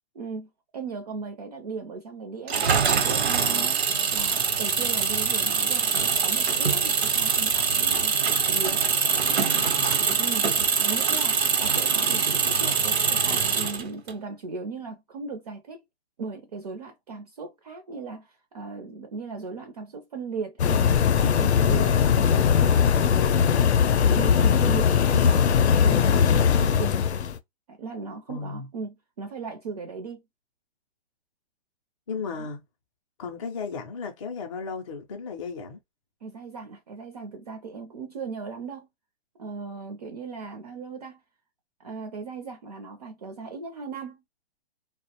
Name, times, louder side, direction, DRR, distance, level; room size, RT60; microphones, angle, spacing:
voice 1, 0.1-3.8 4.1-8.2 8.5-8.9 10.2-10.5 10.8-15.8 16.2-20.9 21.2-27.0 27.7-30.2 32.2-32.5 36.2-38.9 39.4-41.2 41.8-44.2, right 4 dB, 40° right, 0.4 m, -37 dB
Engine, 2.5-14.1, right 6 dB, 75° right, 0.8 m, -23 dB
sound 1, 20.6-27.4, left 7 dB, 85° left, 0.6 m, -20 dB
voice 2, 28.3-28.7 32.1-32.6 33.2-35.8, left 5 dB, 30° left, 0.4 m, -35 dB
2.3 x 2.0 x 2.8 m
hypercardioid pair, 160°, 32 cm